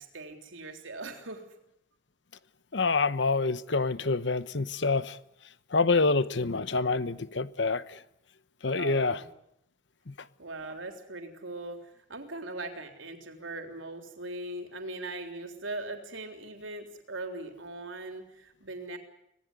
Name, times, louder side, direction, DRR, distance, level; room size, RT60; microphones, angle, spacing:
voice 1, 0.0-1.4 6.0-6.2 8.7-9.3 10.4-19.0, right 2 dB, 80° right, 3.6 m, -40 dB
voice 2, 2.7-5.2 5.7-8.0 8.6-9.2 10.1-10.2, left 3 dB, 60° left, 1.0 m, -27 dB
25.0 x 19.0 x 9.8 m
head